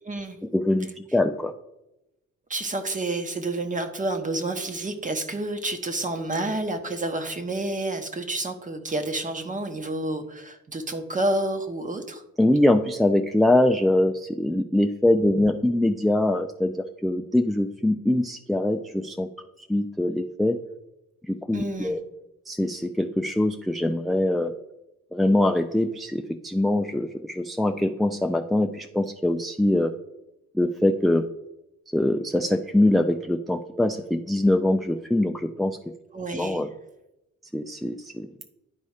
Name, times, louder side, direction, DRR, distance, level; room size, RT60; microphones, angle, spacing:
voice 1, 0.0-0.4 2.5-12.2 21.5-22.0 36.1-36.6, right 2 dB, 25° right, 7 dB, 1.1 m, -29 dB
voice 2, 0.5-1.5 12.4-16.8 17.0-19.3 19.7-20.6 21.2-22.0 22.5-24.5 25.1-29.9 30.5-31.2 31.9-35.8 36.3-36.7 37.5-38.3, left 1 dB, ahead, 5 dB, 0.3 m, -23 dB
11.0 x 4.2 x 4.9 m, 0.94 s
cardioid pair, 90°, 30 cm